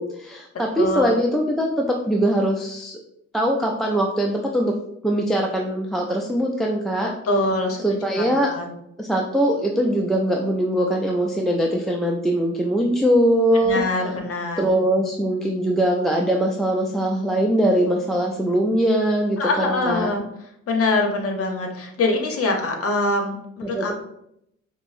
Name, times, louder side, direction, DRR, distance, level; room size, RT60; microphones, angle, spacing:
voice 1, 0.0-3.0 3.3-4.7 5.0-7.1 7.8-8.5 9.0-13.8 14.1-14.2 14.6-20.1 23.6-23.9, right 1 dB, ahead, -1 dB, 0.3 m, -21 dB
voice 2, 0.8-1.2 7.2-7.8 8.2-8.7 13.5-14.7 19.4-20.2 20.7-23.4 23.7-23.9, left 2 dB, 50° left, 3 dB, 0.8 m, -23 dB
5.2 x 2.0 x 2.5 m, 0.75 s
cardioid pair, 90°, 30 cm